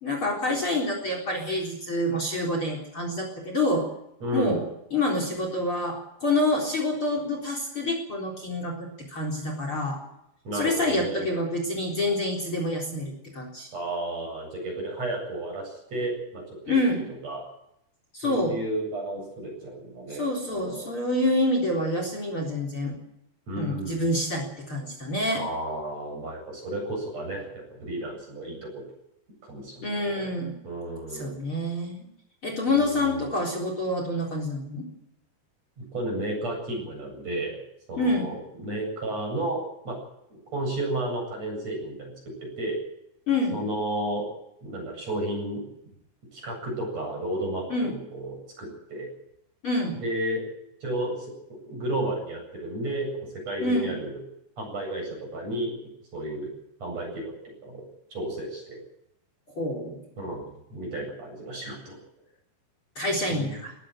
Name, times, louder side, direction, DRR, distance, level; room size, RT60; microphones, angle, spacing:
voice 1, 0.0-3.9 4.3-4.6 4.9-10.0 10.5-13.7 16.7-17.0 18.1-18.6 20.1-23.0 23.5-25.4 29.8-30.5 31.1-32.1 32.4-34.9 38.0-38.3 43.3-43.6 47.7-47.9 49.6-50.0 53.6-53.9 59.5-60.0 63.0-63.7, left 1 dB, 30° left, 3 dB, 4.4 m, -27 dB
voice 2, 4.2-4.6 10.4-11.3 13.7-16.8 17.2-17.4 18.2-20.9 23.5-24.1 25.4-28.8 29.5-30.3 30.6-31.4 32.7-33.2 35.8-37.6 37.9-40.0 40.5-42.1 42.4-42.8 43.5-44.3 44.6-45.6 46.3-49.1 50.0-50.4 50.8-51.3 51.6-53.1 53.5-54.2 54.6-55.7 56.1-56.5 56.8-57.8 58.1-58.8 60.2-62.0 63.3-63.6, right 1 dB, 40° right, 2 dB, 9.2 m, -32 dB
20.0 x 16.0 x 9.2 m, 0.79 s
omnidirectional pair, 4.7 m